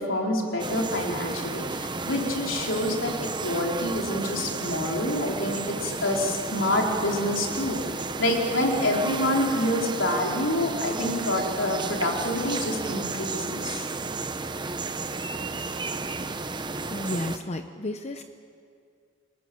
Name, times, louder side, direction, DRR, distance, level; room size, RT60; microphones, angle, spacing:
voice 1, 0.0-13.8, left 1 dB, 75° left, 0 dB, 4.3 m, -27 dB
sound 1, 0.6-17.4, right 3 dB, 25° right, 0.9 m, -33 dB
voice 2, 16.9-18.2, left 1 dB, 35° left, 7 dB, 0.9 m, -32 dB
29.5 x 20.0 x 7.8 m, 2.3 s
head